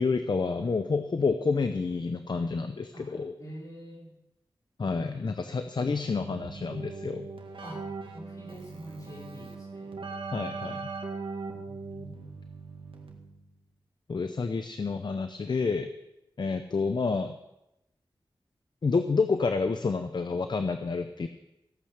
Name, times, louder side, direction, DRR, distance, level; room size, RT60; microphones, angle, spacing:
voice 1, 0.0-3.3 4.8-7.3 10.3-10.9 14.1-15.9 16.4-17.4 18.8-21.3, left 4 dB, 55° left, 8 dB, 0.7 m, -29 dB
voice 2, 2.9-4.1 4.8-5.6 5.9-6.1 7.6-7.8 8.1-10.0 11.6-12.3, equal, 40° left, -3 dB, 5.2 m, -46 dB
Keyboard (musical), 6.2-13.5, right 4 dB, 90° right, 1.8 m, -40 dB
15.0 x 8.8 x 6.6 m, 0.89 s
wide cardioid pair, 90°, 9 cm